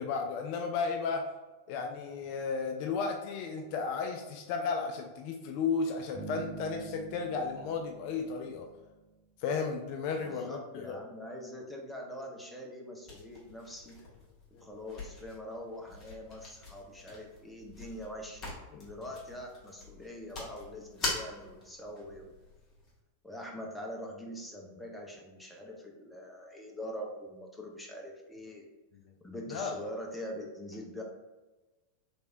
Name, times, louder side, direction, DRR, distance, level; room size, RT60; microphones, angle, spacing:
voice 1, 0.0-1.3 1.7-8.7 9.4-11.0 14.5-14.7 18.7-18.8 28.9-29.1 29.5-29.7, left 5 dB, 45° left, 3 dB, 0.3 m, -34 dB
sound 1, 6.1-9.2, right 4 dB, 45° right, 1.1 m, -46 dB
voice 2, 10.2-14.0 14.6-22.3 23.2-28.7 29.2-31.0, equal, 5° left, 0 dB, 0.6 m, -43 dB
sound 2, 13.0-23.0, left 2 dB, 25° left, 1.4 m, -44 dB
3.3 x 3.3 x 2.6 m, 1.2 s
figure-of-eight pair, 90°, 0 cm